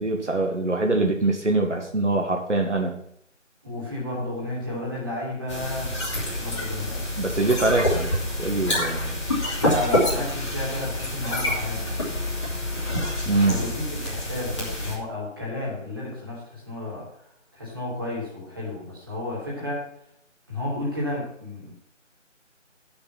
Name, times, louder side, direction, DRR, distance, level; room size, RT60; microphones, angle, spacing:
voice 1, 0.0-3.0 7.2-9.2 13.3-13.6, right 2 dB, 65° right, 2 dB, 2.1 m, -24 dB
voice 2, 3.6-5.9 6.3-7.0 9.5-12.2 13.5-17.1 17.5-19.8 20.5-21.7, left 1 dB, 20° right, -5 dB, 2.7 m, -32 dB
sound 1, 5.5-14.9, left 1 dB, 25° left, 2.7 m, -27 dB
9.9 x 6.8 x 6.0 m, 0.70 s
figure-of-eight pair, 175°, 38 cm